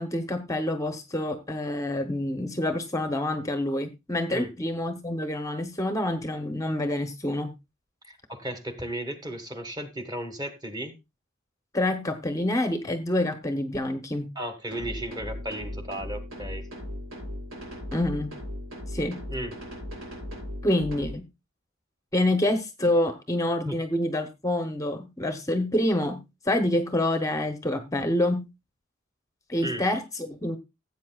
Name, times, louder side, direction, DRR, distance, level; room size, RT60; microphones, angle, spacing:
voice 1, 0.0-7.5 11.7-14.3 17.9-18.3 18.9-19.2 20.6-21.3 22.1-28.5 29.5-30.6, left 1 dB, 15° left, 0.8 m, -27 dB
voice 2, 8.1-10.9 14.3-16.7 19.3-19.5 23.6-23.8 29.6-29.8, right 1 dB, 20° right, 1.5 m, -35 dB
sound 1, 14.7-21.1, left 1 dB, 75° right, 5.2 m, -37 dB
16.0 x 8.3 x 2.3 m
head